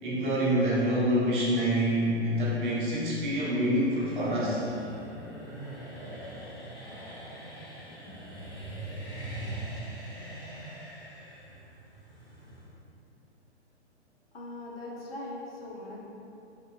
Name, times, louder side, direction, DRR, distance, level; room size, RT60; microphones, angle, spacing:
voice 1, 0.0-4.6, equal, 45° right, -6 dB, 0.7 m, -26 dB
sound 1, 2.2-12.7, right 1 dB, 35° left, 1.5 m, -42 dB
voice 2, 14.3-16.0, left 1 dB, 60° left, -3 dB, 0.6 m, -40 dB
2.9 x 2.4 x 2.4 m, 2.8 s
figure-of-eight pair, 110°, 35 cm